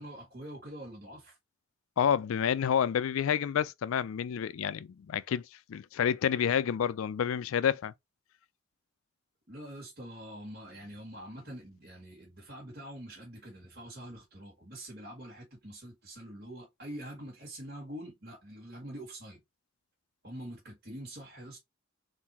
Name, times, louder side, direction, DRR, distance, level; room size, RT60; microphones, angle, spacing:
voice 1, 0.0-1.4 9.5-19.4 20.2-21.6, right 1 dB, 50° right, 1.7 m, -45 dB
voice 2, 2.0-7.9, left 8 dB, 75° left, 0.3 m, -29 dB
3.8 x 2.6 x 4.2 m
head